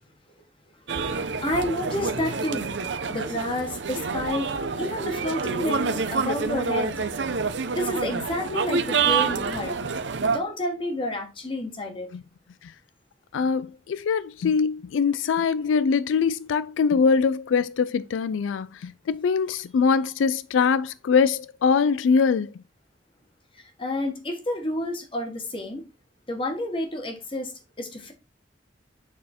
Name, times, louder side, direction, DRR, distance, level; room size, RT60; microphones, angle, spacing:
sound 1, 0.9-10.4, right 5 dB, 70° right, 0.7 m, -27 dB
voice 1, 1.0-7.0 7.7-9.7 10.2-12.1 23.6-25.8 26.3-28.1, left 1 dB, 30° left, 1.5 m, -30 dB
voice 2, 13.3-22.5, left 5 dB, 90° left, 0.3 m, -23 dB
7.1 x 4.2 x 4.3 m
head